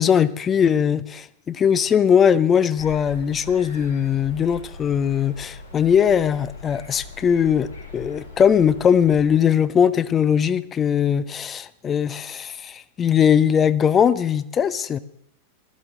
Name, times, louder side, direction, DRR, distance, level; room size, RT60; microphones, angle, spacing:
voice 1, 0.0-15.0, left 8 dB, 25° left, 16 dB, 0.7 m, -20 dB
sound 1, 2.8-9.3, left 3 dB, 80° left, 4.3 m, -41 dB
16.5 x 13.5 x 3.9 m, 0.77 s
figure-of-eight pair, 90°, 0 cm